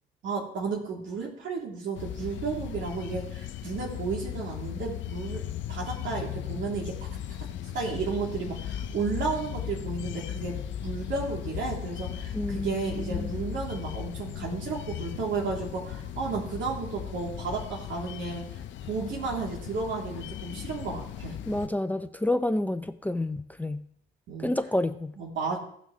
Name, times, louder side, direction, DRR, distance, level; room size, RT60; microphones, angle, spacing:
voice 1, 0.2-5.4 5.7-7.0 7.4-10.6 10.8-18.4 18.8-21.4 24.3-24.5 25.2-25.6, right 4 dB, 75° right, -1 dB, 2.9 m, -33 dB
sound 1, 1.9-21.7, left 10 dB, 70° left, 0.7 m, -37 dB
voice 2, 12.3-13.4 21.5-23.9 24.4-25.2, left 1 dB, 10° left, 11 dB, 0.5 m, -29 dB
16.5 x 6.0 x 3.1 m, 0.66 s
cardioid pair, 90°, 20 cm